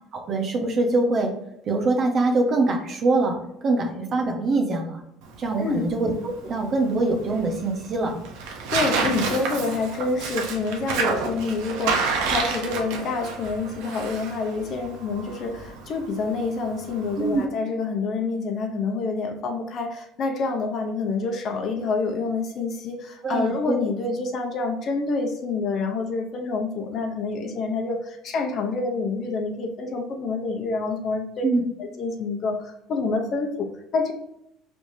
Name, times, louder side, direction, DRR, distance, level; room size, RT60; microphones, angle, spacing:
voice 1, 0.1-1.3 1.7-3.4 3.6-5.0 5.4-8.2 17.2-17.4 23.2-23.8 31.4-31.6, right 3 dB, 40° right, 2 dB, 0.9 m, -23 dB
Tearing, 5.2-17.4, right 4 dB, 80° right, 0.9 m, -30 dB
voice 2, 8.7-31.5 31.8-34.1, left 3 dB, 45° left, 3 dB, 0.8 m, -27 dB
4.7 x 3.4 x 2.7 m, 0.80 s
cardioid pair, 130°, 0 cm